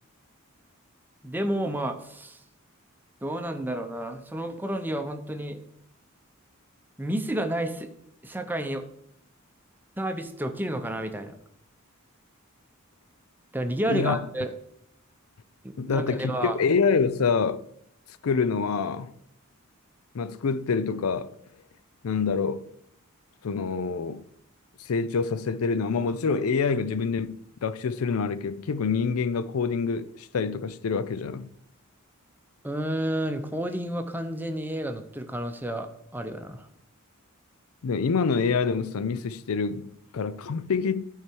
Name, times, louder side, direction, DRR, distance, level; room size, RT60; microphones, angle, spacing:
voice 1, 1.2-2.4 3.2-5.6 7.0-7.9 8.2-8.9 10.0-11.4 13.5-14.5 15.6-16.6 32.6-36.7, right 1 dB, 10° right, 0.7 m, -30 dB
voice 2, 13.9-14.2 15.8-17.6 18.2-19.1 20.1-21.3 22.0-22.6 23.4-24.2 24.8-31.5 37.8-41.1, left 5 dB, 80° left, 0.5 m, -26 dB
12.5 x 4.7 x 4.5 m
head